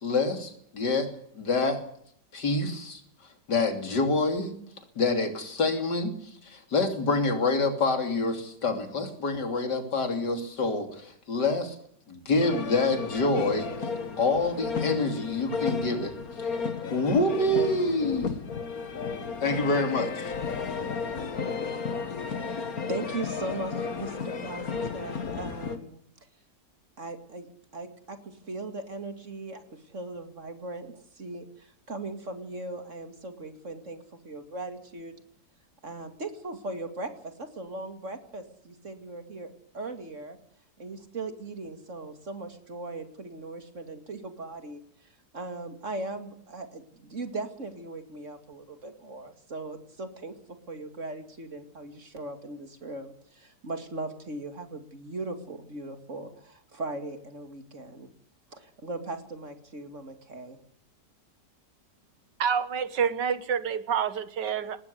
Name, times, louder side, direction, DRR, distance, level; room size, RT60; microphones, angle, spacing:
voice 1, 0.0-1.8 2.3-3.0 3.5-4.5 5.0-6.1 6.4-11.8 12.1-13.7 14.2-16.1 16.4-16.5 16.9-18.4 19.4-20.3, left 2 dB, 70° left, 3.7 m, -27 dB
sound 1, 12.4-25.8, left 5 dB, 55° left, 2.1 m, -33 dB
voice 2, 22.2-26.0 27.0-27.5 27.7-35.1 35.8-39.5 39.7-40.4 40.8-44.8 45.3-50.3 50.7-58.1 58.5-60.6, right 2 dB, 45° right, 2.7 m, -39 dB
voice 3, 62.4-64.8, right 7 dB, 80° right, 2.0 m, -28 dB
20.0 x 16.0 x 8.2 m
omnidirectional pair, 1.9 m